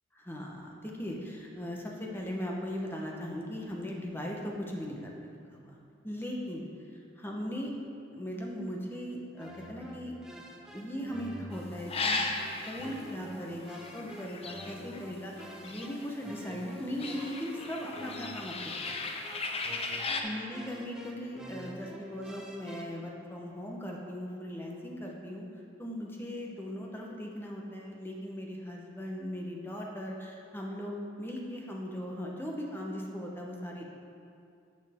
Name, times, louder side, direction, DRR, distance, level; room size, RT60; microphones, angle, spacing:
voice 1, 0.1-5.1 5.5-5.8 6.0-6.6 7.2-7.7 8.1-10.4 10.7-12.2 12.7-18.7 20.2-25.5 25.8-33.8, equal, 10° left, -1 dB, 1.0 m, -38 dB
sound 1, 9.4-23.1, equal, 5° right, 0.6 m, -48 dB
sound 2, 11.5-16.3 16.6-20.2, left 3 dB, 30° left, 0.6 m, -36 dB
11.0 x 6.4 x 3.6 m, 2.5 s
head